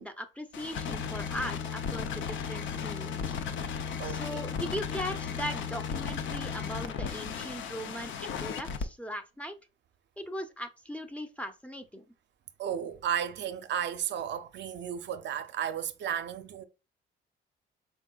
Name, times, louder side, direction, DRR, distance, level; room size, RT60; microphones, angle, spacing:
voice 1, 0.0-3.4 4.0-9.5 10.2-12.1, equal, 5° left, 0.6 m, -39 dB
sound 1, 0.5-8.9, left 6 dB, 70° left, 0.6 m, -35 dB
voice 2, 4.0-4.4 12.6-16.6, right 9 dB, 65° right, 0.5 m, -34 dB
4.5 x 3.6 x 2.3 m
cardioid pair, 90°, 20 cm